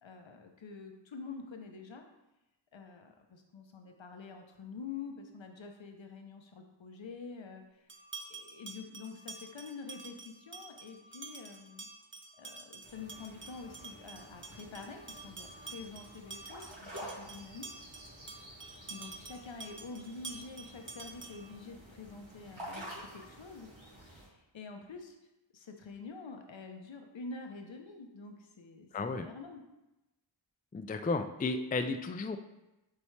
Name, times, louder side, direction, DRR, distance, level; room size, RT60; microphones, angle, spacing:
voice 1, 0.0-2.1 2.7-7.6 8.3-11.9 12.4-17.9 18.9-23.7 24.1-25.1 25.5-29.6, left 4 dB, 75° left, 4 dB, 0.8 m, -47 dB
sound 1, 7.9-21.6, right 3 dB, 25° right, 0.6 m, -49 dB
sound 2, 12.8-24.3, equal, 85° right, 2.3 m, -50 dB
voice 2, 28.9-29.3 30.7-32.4, left 3 dB, 20° left, 8 dB, 0.3 m, -33 dB
8.3 x 4.2 x 3.2 m, 0.96 s
wide cardioid pair, 65°, 45 cm